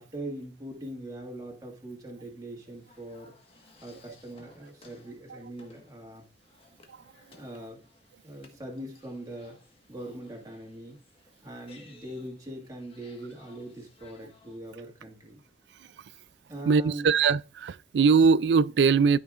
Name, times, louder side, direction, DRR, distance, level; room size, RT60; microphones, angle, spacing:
voice 1, 0.0-3.3 3.8-6.3 7.4-7.8 8.2-9.6 9.9-11.0 11.4-15.4 16.5-17.1, right 1 dB, 20° right, 1.9 m, -41 dB
sound 1, 2.6-14.6, left 3 dB, 35° left, 1.4 m, -59 dB
voice 2, 16.7-19.2, right 5 dB, 80° right, 0.3 m, -22 dB
13.5 x 5.7 x 2.5 m
head